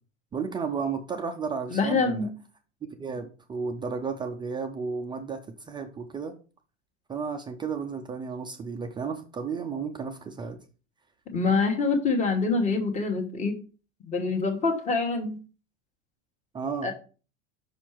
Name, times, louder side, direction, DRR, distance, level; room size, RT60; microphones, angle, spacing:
voice 1, 0.3-2.3 3.0-5.4 5.7-6.3 7.1-10.6 16.5-16.9, right 5 dB, 15° right, 0.4 m, -33 dB
voice 2, 1.7-2.3 11.3-13.6 14.0-15.4 16.8-16.9, left 4 dB, 20° left, 1.2 m, -25 dB
5.7 x 4.4 x 4.5 m
supercardioid pair, 135°, 37 cm